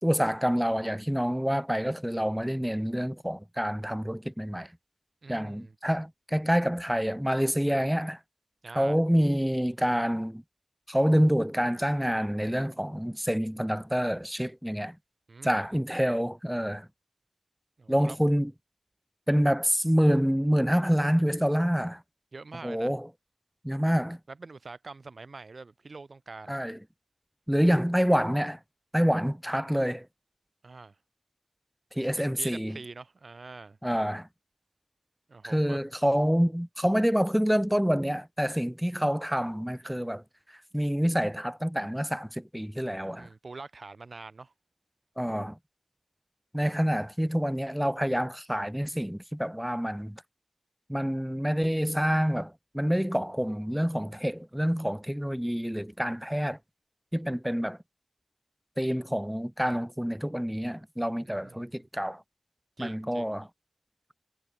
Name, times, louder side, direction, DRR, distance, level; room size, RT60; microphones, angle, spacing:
voice 1, 0.0-4.7 5.3-8.2 8.8-10.4 10.9-15.0 15.4-16.9 17.9-18.5 19.3-22.0 22.6-23.1 23.6-24.2 26.5-26.8 27.5-28.6 28.9-30.1 32.0-32.8 33.8-34.3 35.4-40.2 40.7-43.3 45.2-45.6 46.5-50.2 50.9-56.6 57.1-57.8 58.8-62.2 62.8-63.5, equal, 5° right, 5.3 m, -27 dB
voice 2, 5.2-5.8 8.6-9.0 15.3-15.8 17.8-18.2 22.3-22.9 24.3-26.6 30.6-30.9 32.2-33.8 35.3-35.8 40.8-40.9 43.1-44.5 61.2-61.7 62.8-63.4, right 3 dB, 80° right, 5.8 m, -45 dB
wide cardioid pair, 60°, 0 cm